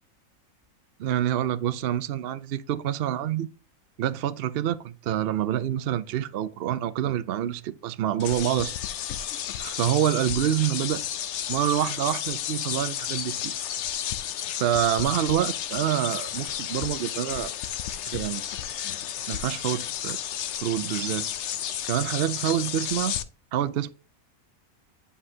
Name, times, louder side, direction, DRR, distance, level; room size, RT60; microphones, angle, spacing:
voice 1, 1.0-3.5 4.0-8.7 9.6-11.0 11.5-13.6 14.6-17.5 18.1-18.4 19.3-20.2 20.6-21.3 21.9-23.2 23.5-23.9, right 11 dB, 70° right, 0.5 m, -27 dB
sound 1, 8.2-23.2, left 10 dB, 65° left, 0.8 m, -32 dB
9.8 x 5.5 x 2.7 m
omnidirectional pair, 1.5 m